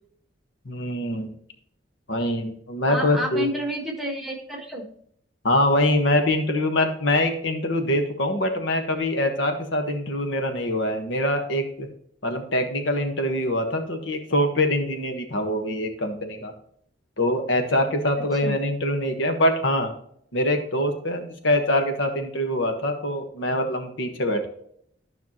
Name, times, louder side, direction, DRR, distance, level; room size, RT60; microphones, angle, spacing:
voice 1, 0.6-1.3 2.1-3.5 5.4-11.9 12.2-16.5 17.2-19.9 20.3-24.5, left 1 dB, 85° left, 5 dB, 1.4 m, -24 dB
voice 2, 2.9-4.8 18.2-18.6, equal, ahead, 2 dB, 1.4 m, -30 dB
12.0 x 5.8 x 3.0 m, 0.66 s
head